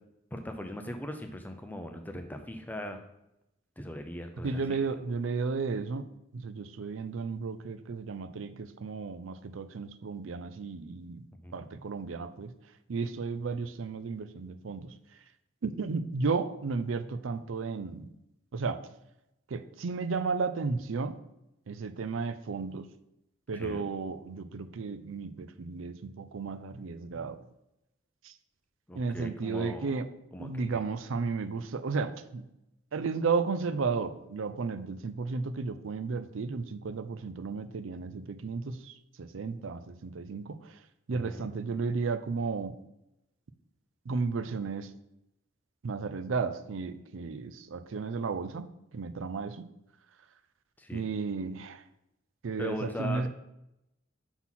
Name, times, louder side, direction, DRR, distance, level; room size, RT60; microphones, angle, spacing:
voice 1, 0.3-3.0 3.8-4.8 11.4-11.7 23.5-23.8 28.9-29.9 30.3-30.8 41.1-41.5 50.8-51.1 52.6-53.3, left 1 dB, 10° left, 5 dB, 0.5 m, -39 dB
voice 2, 4.4-6.1 6.3-11.2 11.5-12.5 12.9-14.9 15.6-18.1 18.5-18.8 19.5-21.2 21.7-22.9 23.5-27.4 28.2-28.3 28.9-30.0 30.4-32.5 32.9-40.8 41.1-42.7 44.1-44.9 45.8-48.7 48.9-49.7 50.9-51.8 52.4-53.3, right 4 dB, 80° right, 12 dB, 0.5 m, -33 dB
6.0 x 4.1 x 5.6 m, 0.86 s
head